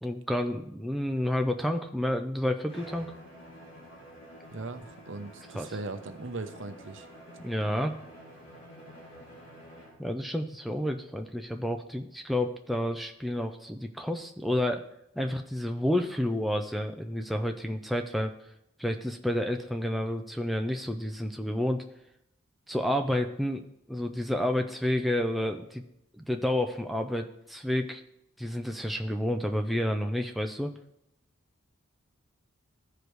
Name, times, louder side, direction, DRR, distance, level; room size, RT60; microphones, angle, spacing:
voice 1, 0.0-3.1 5.5-5.7 7.4-8.0 10.0-14.8 15.2-18.3 18.8-21.8 22.7-23.6 23.9-25.8 26.2-28.0 28.4-30.7, left 1 dB, ahead, 4 dB, 0.4 m, -30 dB
Bowed string instrument, 2.7-10.1, equal, 60° left, 2.9 m, -49 dB
voice 2, 4.5-7.1, right 3 dB, 60° right, 8 dB, 0.8 m, -39 dB
14.5 x 5.0 x 3.1 m, 0.82 s
head